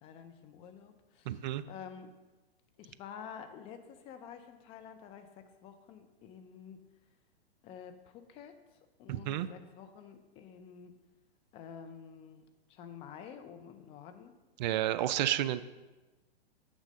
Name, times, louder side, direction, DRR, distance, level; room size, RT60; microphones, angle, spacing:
voice 1, 0.0-2.1 2.8-6.8 7.6-8.6 9.0-10.9 11.5-14.3, left 7 dB, 20° left, 8 dB, 0.4 m, -49 dB
voice 2, 1.3-1.6 9.1-9.5 14.6-15.6, right 13 dB, 45° right, 14 dB, 0.4 m, -31 dB
6.4 x 6.4 x 5.2 m, 1.2 s
hypercardioid pair, 125°, 32 cm